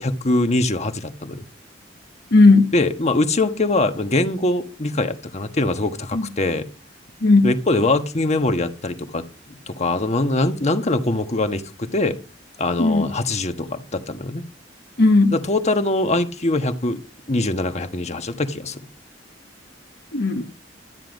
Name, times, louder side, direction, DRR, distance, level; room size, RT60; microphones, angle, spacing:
voice 1, 0.0-1.4 2.7-6.6 7.4-9.2 9.5-12.2 12.6-14.4 15.3-17.0 17.3-18.8, left 2 dB, 35° left, 1.4 m, -22 dB
voice 2, 2.3-2.7 6.1-6.2 7.2-7.5 12.8-13.1 15.0-15.3 20.1-20.5, left 3 dB, 60° left, 1.3 m, -15 dB
13.0 x 9.7 x 5.3 m
head